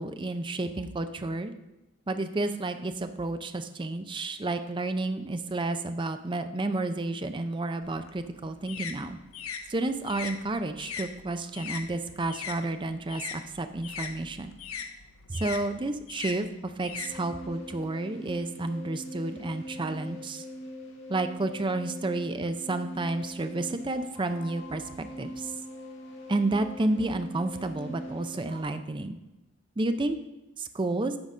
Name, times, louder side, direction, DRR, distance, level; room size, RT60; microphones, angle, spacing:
voice 1, 0.0-1.5 2.1-9.2 9.7-14.5 15.3-20.4 21.1-25.5 26.3-29.2 29.8-30.2 30.6-31.1, right 2 dB, 25° right, 9 dB, 0.5 m, -31 dB
sound 1, 7.8-12.6 12.9-17.7, left 6 dB, 90° left, 0.8 m, -40 dB
sound 2, 17.0-28.6, equal, 55° left, 2.0 m, -42 dB
9.7 x 4.0 x 6.1 m, 0.97 s
head